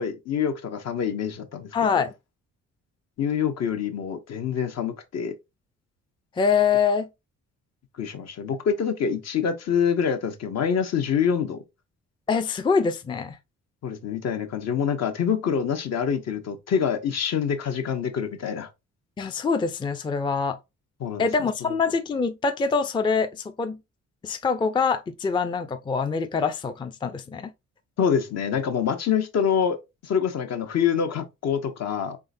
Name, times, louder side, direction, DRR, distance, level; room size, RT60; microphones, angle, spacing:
voice 1, 0.0-2.0 3.2-5.4 8.0-11.6 13.8-18.7 21.0-21.3 28.0-32.2, left 7 dB, 60° left, 0.9 m, -26 dB
voice 2, 1.7-2.1 6.4-7.1 12.3-13.4 19.2-20.6 21.2-23.8 24.2-27.5, left 5 dB, 15° left, 0.4 m, -24 dB
3.7 x 3.2 x 2.5 m
cardioid pair, 90°, 30 cm